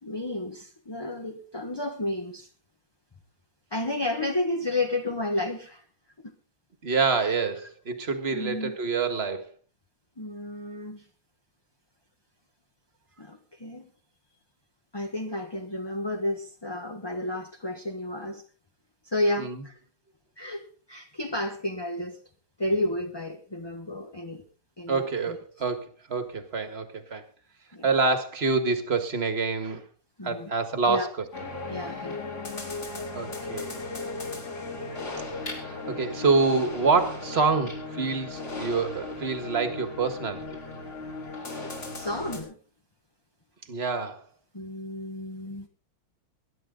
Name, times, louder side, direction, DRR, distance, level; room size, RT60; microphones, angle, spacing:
voice 1, 0.0-2.5 3.7-5.8 7.2-7.3 8.3-8.8 10.2-11.0 13.2-13.9 14.9-18.4 19.0-19.8 20.4-22.2 22.6-24.4 24.8-25.4 27.7-27.9 30.2-30.5 30.9-31.1 31.7-32.2 40.8-41.0 41.2-41.3 41.9-42.5 44.5-45.7, left 1 dB, 15° left, 1.0 m, -32 dB
voice 2, 6.8-9.5 19.4-19.6 24.9-27.2 27.8-29.8 30.2-31.1 33.1-33.8 35.6-40.4 43.7-44.2, right 4 dB, 35° right, 1.8 m, -26 dB
sound 1, 31.3-42.4, left 3 dB, 35° left, 4.9 m, -36 dB
22.0 x 10.5 x 3.9 m
omnidirectional pair, 2.1 m